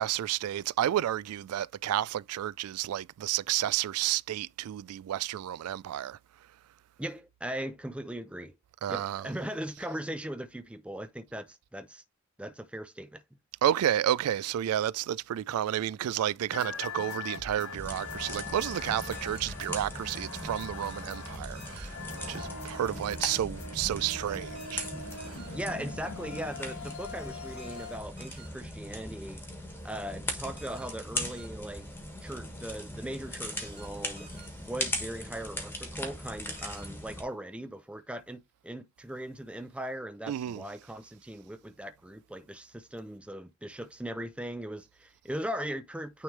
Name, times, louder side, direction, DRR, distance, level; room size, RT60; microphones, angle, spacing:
voice 1, 0.0-6.2 8.8-9.3 13.6-22.0 22.3-24.8 40.3-40.6, right 11 dB, 85° right, 0.3 m, -31 dB
voice 2, 7.0-8.6 8.9-12.0 12.4-13.4 25.5-29.4 29.8-31.9 32.2-34.3 34.6-46.2, right 1 dB, 5° right, 0.4 m, -39 dB
sound 1, 16.5-28.0, left 4 dB, 85° left, 2.2 m, -42 dB
sound 2, 17.7-37.2, left 1 dB, 10° left, 1.3 m, -40 dB
sound 3, 18.6-18.9 19.2-19.5 21.6-21.9 22.2-22.5 24.6-24.9 25.2-25.5 27.6-27.9 28.2-28.5 30.6-30.9 31.2-31.5 33.6-33.9 34.2-34.5 36.6-36.9, right 4 dB, 25° right, 2.0 m, -53 dB
9.3 x 3.3 x 3.2 m
head